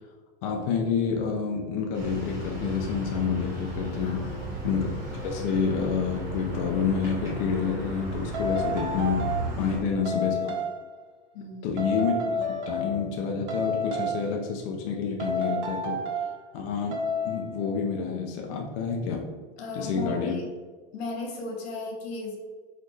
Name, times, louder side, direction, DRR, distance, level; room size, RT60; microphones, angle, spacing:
voice 1, 0.4-4.9 5.2-9.3 9.6-10.5 11.6-16.0 16.5-17.0 17.2-19.3 19.7-20.4, left 6 dB, 35° left, 0 dB, 0.4 m, -28 dB
sound 1, 1.9-9.8, right 1 dB, 10° right, 1.0 m, -35 dB
voice 2, 4.0-4.6 9.6-9.8 11.3-11.8 19.6-20.5 20.9-22.4, left 3 dB, 80° left, 1 dB, 1.5 m, -36 dB
sound 2, 7.3-7.5 8.3-9.6 10.0-10.8 11.8-13.2 13.5-14.4 15.2-16.4 16.9-17.5, left 1 dB, 55° right, 0.9 m, -30 dB
4.1 x 4.0 x 3.1 m, 1.5 s
supercardioid pair, 170°, 31 cm